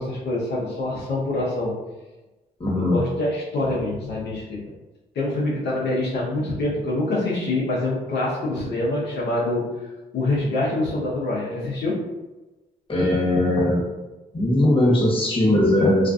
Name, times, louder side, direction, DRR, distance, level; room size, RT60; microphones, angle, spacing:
voice 1, 0.0-1.7 2.7-4.6 5.1-9.9 10.1-12.0, left 2 dB, 75° left, -6 dB, 0.7 m, -25 dB
voice 2, 2.6-3.0 12.9-13.8 14.3-16.1, left 1 dB, 30° left, -5 dB, 1.1 m, -19 dB
2.4 x 2.2 x 2.5 m, 1.1 s
supercardioid pair, 65°, 17 cm